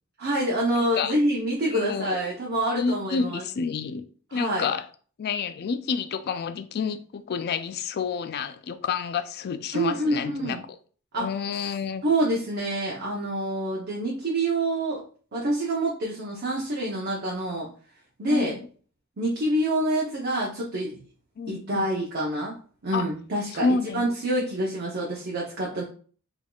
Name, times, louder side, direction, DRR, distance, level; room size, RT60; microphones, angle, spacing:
voice 1, 0.2-3.4 4.3-4.7 9.7-10.6 11.1-11.3 12.0-15.0 15.3-17.7 18.2-18.6 19.2-21.0 21.5-22.5 22.8-25.8, right 1 dB, 50° right, 0.7 m, -27 dB
voice 2, 0.8-1.1 1.7-2.2 2.7-4.0 4.3-4.9 5.2-10.6 11.1-12.0 18.3-18.7 21.4-21.9 22.9-23.1 23.5-24.0, left 5 dB, 50° left, 0.3 m, -29 dB
3.8 x 3.5 x 2.3 m
head